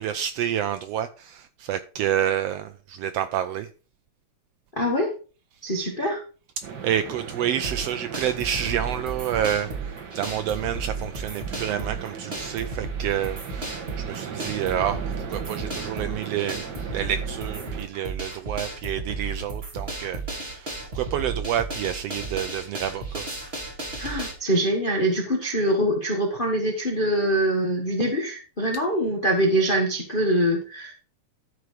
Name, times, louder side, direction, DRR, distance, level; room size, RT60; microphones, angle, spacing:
voice 1, 0.0-3.7 6.8-9.7 10.1-15.0 15.3-16.7 16.9-23.3, right 10 dB, 80° right, 1.4 m, -28 dB
voice 2, 4.8-5.1 5.6-6.2 24.0-30.9, right 1 dB, 30° left, 0.9 m, -24 dB
sound 1, 6.6-17.9, right 6 dB, 45° right, 1.6 m, -38 dB
sound 2, 7.6-24.3, right 3 dB, 20° right, 2.8 m, -34 dB
12.5 x 4.8 x 4.8 m
omnidirectional pair, 3.3 m